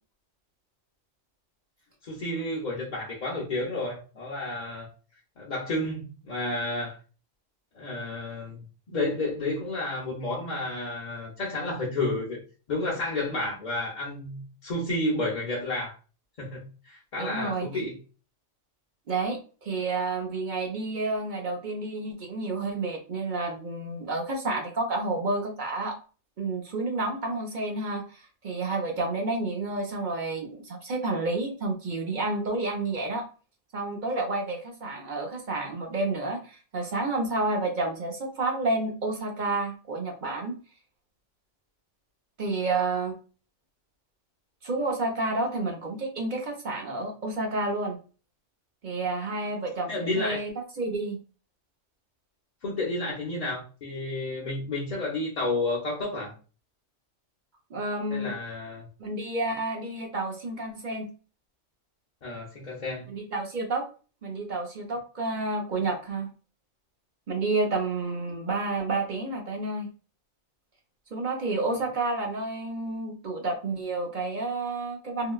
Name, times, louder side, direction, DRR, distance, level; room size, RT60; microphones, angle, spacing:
voice 1, 2.0-4.9 5.4-7.0 7.7-12.4 12.7-15.9 16.4-18.0 49.9-50.4 52.6-56.3 58.1-58.9 62.2-63.1, left 2 dB, 45° left, -6 dB, 0.7 m, -31 dB
voice 2, 17.2-17.7 19.1-26.0 26.4-33.3 33.7-40.6 42.4-43.2 44.6-48.0 48.8-51.2 57.7-58.3 59.0-61.1 63.1-63.9 64.2-66.3 67.3-69.9 71.1-75.3, right 2 dB, 45° right, 2 dB, 0.7 m, -30 dB
3.7 x 2.2 x 2.3 m, 0.36 s
omnidirectional pair, 1.3 m